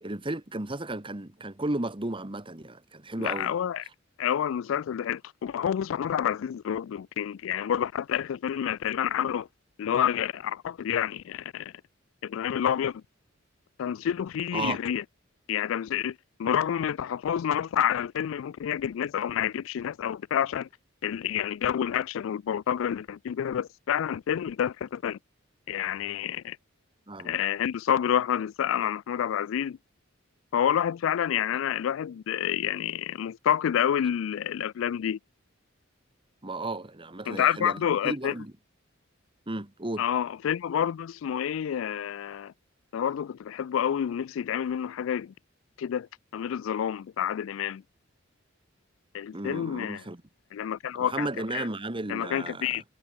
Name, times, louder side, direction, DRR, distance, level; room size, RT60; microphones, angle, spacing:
voice 1, 0.0-3.5 14.5-14.8 27.1-27.3 36.4-38.5 39.5-40.0 49.3-50.2 51.0-52.8, right 2 dB, 25° right, 1.6 m, -34 dB
voice 2, 3.2-3.8 4.2-9.5 9.8-11.7 12.2-13.0 13.8-15.0 15.5-20.7 21.0-25.2 25.7-26.6 27.2-29.8 30.5-35.2 37.3-38.3 40.0-42.5 42.9-45.3 45.8-46.1 46.3-47.8 49.1-50.0 50.5-51.3 51.5-51.6 52.1-52.8, left 9 dB, 80° left, 0.3 m, -28 dB
head